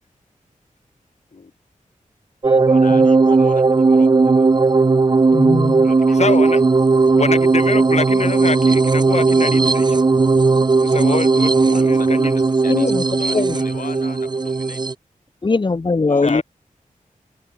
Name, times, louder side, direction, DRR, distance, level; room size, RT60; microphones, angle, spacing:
sound 1, 2.4-14.9, right 3 dB, 30° right, 0.6 m, -16 dB
voice 1, 2.6-3.6 3.9-4.5 5.8-6.4 11.7-14.8 16.1-16.4, left 6 dB, 70° left, 1.4 m, -37 dB
voice 2, 5.3-5.9 12.7-13.0 13.3-13.6 15.4-16.4, left 3 dB, 35° left, 1.0 m, -20 dB
voice 3, 6.1-6.6 7.2-10.0 10.8-12.4 16.2-16.4, left 4 dB, 50° left, 2.4 m, -25 dB
wide cardioid pair, 115°, 14 cm